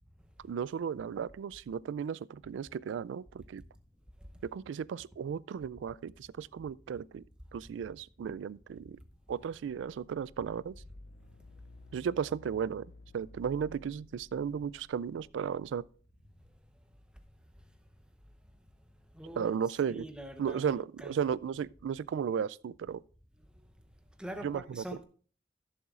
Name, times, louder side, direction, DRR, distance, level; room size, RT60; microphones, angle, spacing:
voice 1, 0.4-3.6 4.4-7.2 7.5-9.0 9.3-10.7 11.9-15.8 19.4-20.1 20.4-23.0 24.4-24.8, right 7 dB, 90° right, 0.3 m, -35 dB
sound 1, 8.8-16.6, left 2 dB, 65° left, 0.5 m, -55 dB
voice 2, 19.1-19.5 19.9-21.1 24.2-25.0, right 1 dB, 5° right, 0.8 m, -43 dB
15.0 x 7.1 x 2.4 m
head